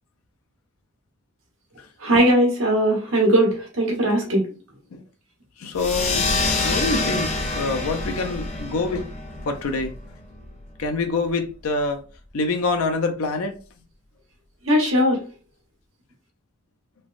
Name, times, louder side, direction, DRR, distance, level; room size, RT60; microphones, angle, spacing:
voice 1, 2.0-4.4 14.6-15.2, right 1 dB, 75° right, 1.1 m, -19 dB
voice 2, 5.6-6.3 6.6-9.1 9.5-9.9 10.8-12.0 12.3-13.5, left 3 dB, 90° left, 0.5 m, -25 dB
sound 1, 5.7-10.8, left 2 dB, 30° left, 0.4 m, -26 dB
3.2 x 2.1 x 2.4 m
head